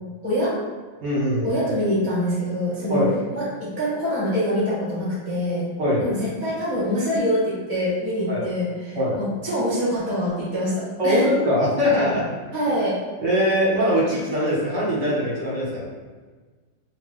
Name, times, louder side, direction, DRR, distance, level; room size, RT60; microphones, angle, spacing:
voice 1, 0.2-0.5 1.4-3.0 3.3-5.7 6.0-11.3 12.5-13.0, equal, 10° left, -10 dB, 0.8 m, -25 dB
voice 2, 1.0-1.5 2.9-3.1 5.8-6.0 8.3-8.4 8.9-9.2 11.0-12.2 13.2-15.9, left 1 dB, 65° right, -6 dB, 1.7 m, -21 dB
3.7 x 2.9 x 3.2 m, 1.4 s
omnidirectional pair, 2.1 m